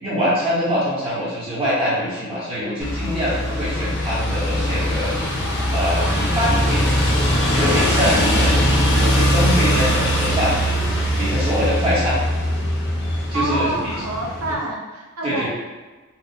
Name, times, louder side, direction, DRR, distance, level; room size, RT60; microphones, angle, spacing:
voice 1, 0.0-5.1 5.7-7.0 7.5-10.6 11.1-12.2 13.3-13.9 15.2-15.5, equal, 25° right, -8 dB, 0.8 m, -23 dB
sound 1, 2.8-14.5, equal, 55° left, 0.6 m, -21 dB
voice 2, 13.3-15.5, right 2 dB, 85° right, -1 dB, 0.6 m, -27 dB
4.2 x 2.0 x 2.6 m, 1.3 s
head